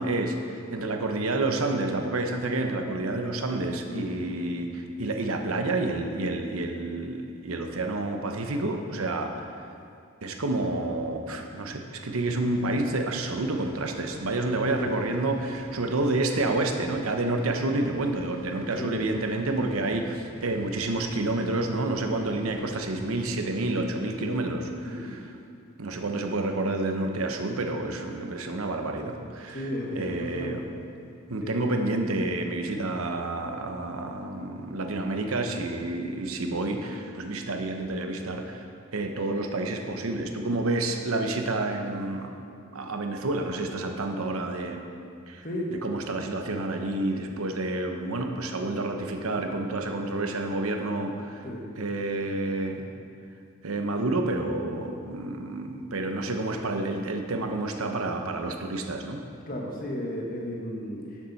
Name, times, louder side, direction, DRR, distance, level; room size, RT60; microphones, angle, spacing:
voice 1, 0.0-9.7 10.2-25.3 25.8-29.7 29.9-30.6 31.3-38.7 38.9-42.4 42.7-44.8 45.3-51.4 51.8-52.9 53.6-59.2, right 2 dB, 85° right, 4 dB, 0.9 m, -29 dB
voice 2, 3.9-4.3 14.8-15.0 18.8-19.1 24.0-24.3 24.8-25.2 29.5-30.6 31.4-31.5 45.4-46.0 51.4-51.7 59.5-61.1, equal, 40° left, -1 dB, 1.3 m, -34 dB
sound 1, 12.1-23.3, right 1 dB, 20° left, 1.9 m, -48 dB
12.0 x 7.4 x 4.1 m, 2.4 s
head